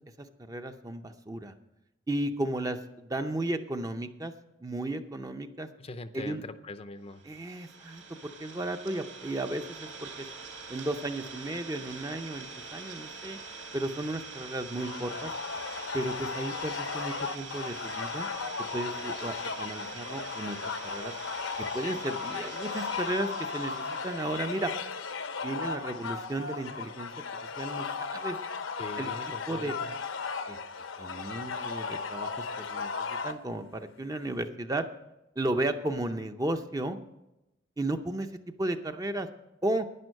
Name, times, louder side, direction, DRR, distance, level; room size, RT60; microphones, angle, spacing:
voice 1, 0.2-1.5 2.1-4.3 4.6-5.7 6.1-6.4 7.2-10.3 10.7-12.5 12.7-13.4 13.7-15.3 15.9-18.3 18.7-21.1 21.7-24.7 25.4-27.1 27.6-28.4 29.0-29.1 29.5-29.8 30.5-30.6 31.0-32.3 32.6-34.9 35.4-37.0 37.8-38.3 38.6-39.3 39.6-39.9, right 1 dB, 20° right, 7 dB, 0.6 m, -34 dB
voice 2, 5.8-7.2 28.8-30.0, left 2 dB, 30° left, 10 dB, 0.5 m, -42 dB
Idling, 7.1-24.9, right 4 dB, 75° right, 4.2 m, -44 dB
sound 1, 14.8-33.3, left 5 dB, 80° left, 0.9 m, -36 dB
11.0 x 9.9 x 6.4 m, 0.93 s
head